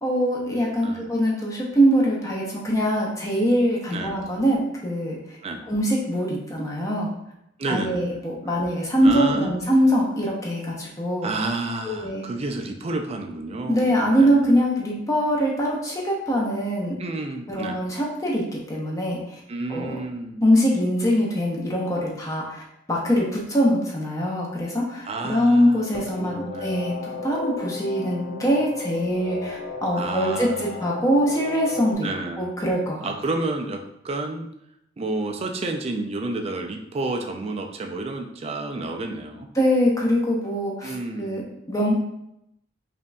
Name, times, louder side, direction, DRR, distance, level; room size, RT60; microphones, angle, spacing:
voice 1, 0.0-5.4 5.7-7.1 7.7-11.3 11.8-12.2 13.7-17.0 17.5-19.4 19.7-19.9 20.4-22.6 22.9-32.1 32.4-33.1 39.5-42.0, equal, 15° left, -2 dB, 0.7 m, -23 dB
voice 2, 3.9-4.2 5.4-5.6 7.6-8.1 8.4-8.5 9.0-9.5 11.2-14.5 17.0-17.8 19.5-20.4 25.0-25.9 26.2-26.8 29.9-30.6 32.0-32.5 33.0-34.5 35.0-39.5 40.8-41.4, right 2 dB, 30° right, 4 dB, 0.4 m, -30 dB
sound 1, 25.9-31.9, left 4 dB, 50° left, 0.6 m, -34 dB
5.1 x 2.6 x 2.2 m, 0.81 s
head